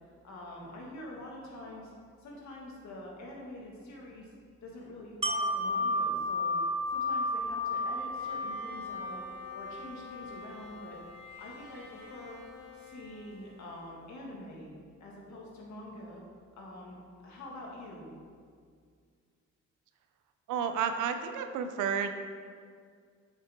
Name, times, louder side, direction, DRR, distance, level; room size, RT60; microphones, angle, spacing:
voice 1, 0.2-1.9 2.2-4.3 4.6-6.6 6.9-9.2 9.5-11.0 11.4-12.4 12.7-14.7 15.0-16.2 16.5-17.0 17.2-18.1, left 1 dB, 65° left, -2 dB, 1.9 m, -46 dB
Wind chime, 5.2-11.0 11.4-11.5, left 1 dB, 20° right, 0.8 m, -33 dB
Bowed string instrument, 8.1-14.2, left 4 dB, 80° left, 1.5 m, -51 dB
voice 2, 20.5-22.1, right 7 dB, 80° right, 7 dB, 0.7 m, -31 dB
7.6 x 5.7 x 3.7 m, 2.1 s
cardioid pair, 90°, 30 cm